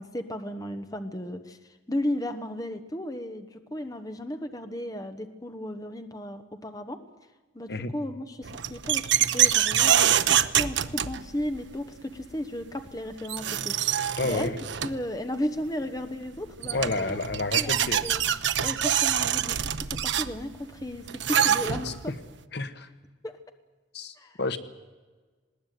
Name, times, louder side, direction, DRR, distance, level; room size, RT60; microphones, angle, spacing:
voice 1, 0.0-1.6 1.9-7.0 7.5-14.5 14.8-17.2 17.6-18.2 18.6-22.1 23.2-23.4 24.2-24.4, left 1 dB, 20° left, 8 dB, 1.1 m, -35 dB
sound 1, 8.4-11.6 12.9-13.0 13.2-15.1 16.3-16.4 16.6-22.1, right 9 dB, 65° right, 0.8 m, -25 dB
voice 2, 14.2-14.5 16.7-18.0 21.8-22.2 22.5-22.9 23.9-24.6, left 3 dB, 55° left, 10 dB, 1.2 m, -30 dB
20.0 x 18.0 x 9.3 m, 1.3 s
head